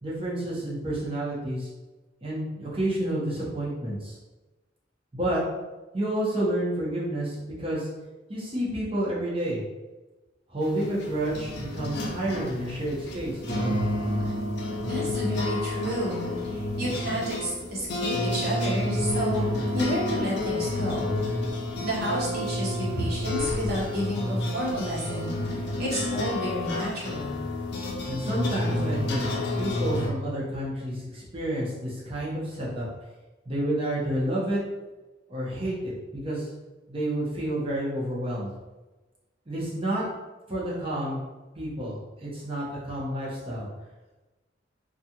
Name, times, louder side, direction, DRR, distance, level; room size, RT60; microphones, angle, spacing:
voice 1, 0.0-1.7 2.2-4.2 5.1-5.4 5.9-7.9 8.3-9.6 10.5-13.7 28.1-32.9 33.4-34.6 35.3-36.5 36.9-38.5 39.5-40.0 40.5-41.2 41.5-43.7, right 1 dB, 30° right, -7 dB, 0.8 m, -30 dB
sound 1, 10.6-30.1, left 1 dB, 60° left, 0.5 m, -30 dB
voice 2, 14.8-19.4 19.7-21.4 21.8-25.3 25.8-27.4, equal, 55° right, -7 dB, 1.0 m, -31 dB
2.4 x 2.4 x 2.8 m, 1.2 s
head